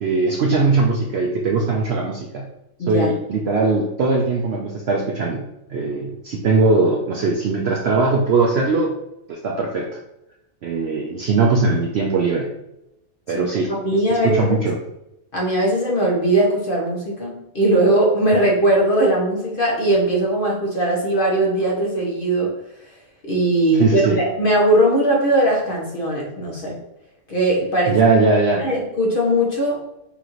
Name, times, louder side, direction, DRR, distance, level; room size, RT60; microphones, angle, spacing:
voice 1, 0.0-2.5 2.9-5.4 5.7-8.9 9.3-9.9 10.6-12.5 13.3-13.7 14.2-14.8 23.8-24.2 27.9-28.7, right 3 dB, 65° right, 0 dB, 0.6 m, -20 dB
voice 2, 2.8-3.1 13.3-13.5 13.8-14.6 15.3-22.5 23.2-26.7 27.3-28.0 28.6-29.8, right 1 dB, 45° left, -2 dB, 1.0 m, -19 dB
5.5 x 2.5 x 3.0 m, 0.86 s
omnidirectional pair, 1.5 m